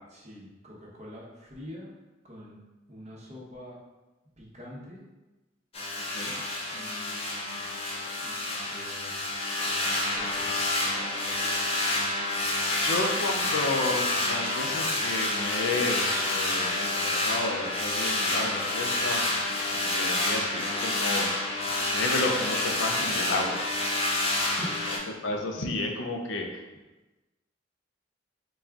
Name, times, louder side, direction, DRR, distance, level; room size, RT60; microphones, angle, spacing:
voice 1, 0.1-1.9 2.2-2.6 2.9-3.8 4.4-5.0 6.7-7.7 8.2-9.3 10.1-10.5 24.4-24.8 25.6-25.7, equal, 35° right, -4 dB, 0.8 m, -45 dB
sound 1, 5.7-25.0, left 2 dB, 30° left, 0.6 m, -28 dB
voice 2, 12.8-19.3 19.8-21.3 21.9-23.7 25.1-26.6, left 2 dB, 90° left, 2 dB, 0.5 m, -31 dB
4.1 x 2.3 x 3.5 m, 1.1 s
head